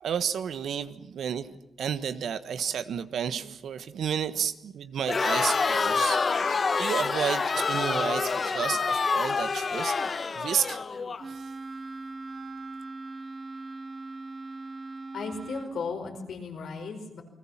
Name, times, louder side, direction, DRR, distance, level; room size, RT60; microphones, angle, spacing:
voice 1, 0.0-10.0 10.3-10.8 11.3-11.4, right 8 dB, 80° right, 1.4 m, -31 dB
Crowd, 5.0-11.2, left 4 dB, 45° left, 1.4 m, -27 dB
Wind instrument woodwind instrument, 11.2-15.8, right 3 dB, 35° right, 2.7 m, -40 dB
voice 2, 15.1-17.2, left 4 dB, 75° left, 5.0 m, -35 dB
29.0 x 20.5 x 7.4 m
cardioid pair, 75°, 0 cm